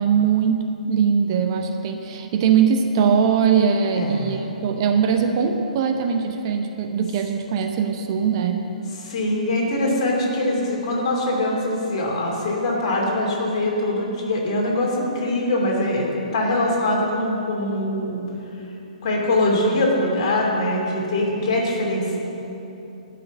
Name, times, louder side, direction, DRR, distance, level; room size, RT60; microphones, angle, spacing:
voice 1, 0.0-8.7, right 7 dB, 35° right, 5 dB, 0.8 m, -21 dB
voice 2, 3.9-4.3 9.0-18.3 19.0-22.2, left 1 dB, 40° left, -2 dB, 2.8 m, -23 dB
12.5 x 5.9 x 8.1 m, 3.0 s
figure-of-eight pair, 125°, 4 cm